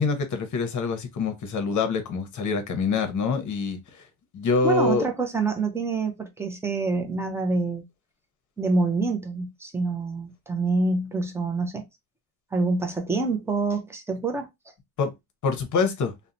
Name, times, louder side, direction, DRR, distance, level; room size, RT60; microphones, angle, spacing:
voice 1, 0.0-3.8 4.3-5.1 15.0-15.1 15.4-16.1, left 4 dB, 40° left, 0.7 m, -25 dB
voice 2, 4.6-7.8 8.6-11.9 12.5-14.5, right 3 dB, 5° right, 0.3 m, -26 dB
2.8 x 2.1 x 2.5 m
cardioid pair, 140°, 47 cm